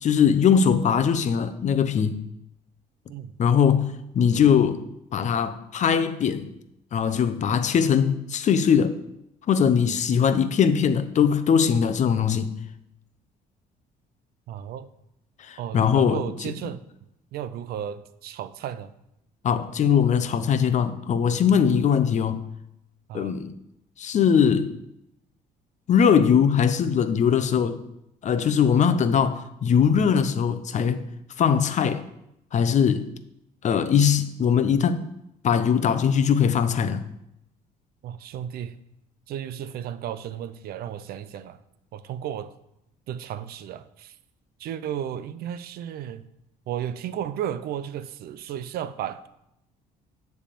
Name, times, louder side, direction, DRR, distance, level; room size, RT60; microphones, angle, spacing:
voice 1, 0.0-2.2 3.4-4.8 5.1-6.5 6.9-9.0 9.5-12.5 15.5-16.2 19.4-22.4 23.1-23.5 24.0-24.8 25.9-27.8 28.2-31.0 31.4-32.0 32.5-33.1 33.6-35.1 35.4-37.0, left 7 dB, 45° left, 0.6 m, -21 dB
voice 2, 14.5-14.9 15.6-16.8 17.3-18.9 23.1-23.4 38.0-38.8 39.3-41.6 41.9-42.5 43.1-44.2 44.6-46.2 46.7-49.3, right 10 dB, 65° right, 0.5 m, -34 dB
10.0 x 3.5 x 6.8 m
cardioid pair, 110°, 17 cm